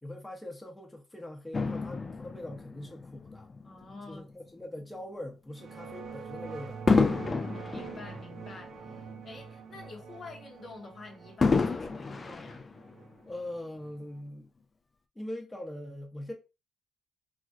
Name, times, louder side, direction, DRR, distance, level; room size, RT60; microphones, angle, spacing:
voice 1, 0.0-3.5 4.1-6.8 13.3-14.5 15.1-16.3, left 1 dB, 10° left, 0.8 m, -42 dB
Fireworks, 1.5-4.1 4.8-5.0 6.9-9.4 9.7-9.8 11.4-13.3 14.0-14.1, left 4 dB, 30° left, 0.4 m, -30 dB
voice 2, 3.6-4.3 7.2-12.6, left 3 dB, 45° left, 0.8 m, -47 dB
sound 1, 5.5-14.2, right 5 dB, 65° right, 0.4 m, -45 dB
3.1 x 2.4 x 2.5 m
cardioid pair, 90°, 0 cm